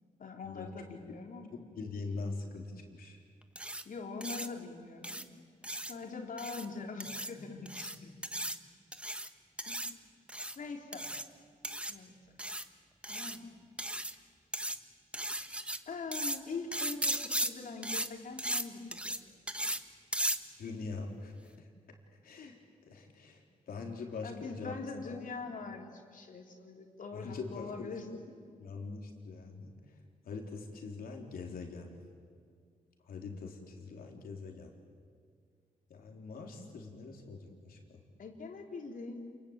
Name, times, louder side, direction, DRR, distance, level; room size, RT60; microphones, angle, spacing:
voice 1, 0.2-1.5 3.9-5.2 5.9-8.1 9.6-9.8 10.6-11.1 11.9-12.1 13.1-13.5 15.9-19.3 24.2-28.1 38.2-39.2, left 4 dB, 65° left, 2 dB, 3.8 m, -43 dB
voice 2, 1.5-3.2 20.6-21.7 22.2-22.6 22.9-24.7 25.1-25.2 27.1-27.9 28.6-29.7 30.2-31.9 33.1-34.7 35.9-38.0, left 4 dB, 80° left, 2 dB, 3.8 m, -43 dB
sound 1, 3.6-3.8 4.2-4.5 5.0-5.2 5.6-5.9 6.4-6.7 7.0-7.3 7.7-8.0 8.2-8.6 8.9-9.3 9.6-9.9 10.3-10.6 10.9-11.2 11.6-11.9 12.4-12.6 13.0-13.4 13.8-14.1 14.5-14.8 15.1-15.8 16.1-16.4 16.7-17.5 17.8-18.1 18.4-18.6 18.9-19.2 19.5-19.8 20.1-20.4, right 1 dB, 10° right, 1.3 m, -36 dB
28.0 x 22.0 x 8.9 m, 2.1 s
cardioid pair, 70°, 15 cm